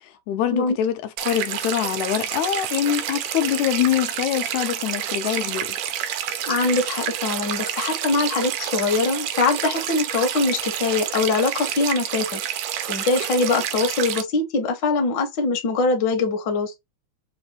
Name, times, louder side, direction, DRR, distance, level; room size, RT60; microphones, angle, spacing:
voice 1, 0.0-5.8, left 10 dB, 80° left, 1.9 m, -24 dB
sound 1, 1.2-14.2, right 10 dB, 80° right, 1.9 m, -28 dB
voice 2, 6.5-12.4 12.9-16.7, left 3 dB, 60° left, 1.2 m, -23 dB
4.8 x 2.6 x 2.8 m
omnidirectional pair, 3.4 m